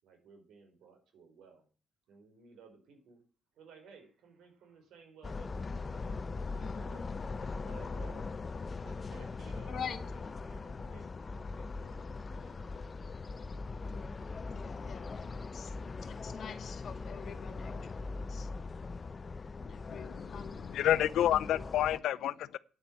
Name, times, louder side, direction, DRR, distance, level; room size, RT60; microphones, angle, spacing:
voice 1, 0.0-1.7 2.1-3.2 3.5-5.7 6.5-8.3 8.8-11.1 11.5-12.6, right 5 dB, 80° right, 4.4 m, -57 dB
sound 1, 5.2-22.0, left 4 dB, 35° left, 0.7 m, -41 dB
voice 2, 6.6-7.0 9.7-10.0 13.8-15.7 16.0-18.0 18.3-18.5 19.6-20.5 21.2-21.7, left 7 dB, 55° left, 2.0 m, -46 dB
voice 3, 19.9-22.6, left 12 dB, 80° left, 0.6 m, -30 dB
9.6 x 8.2 x 7.4 m
cardioid pair, 90°, 0 cm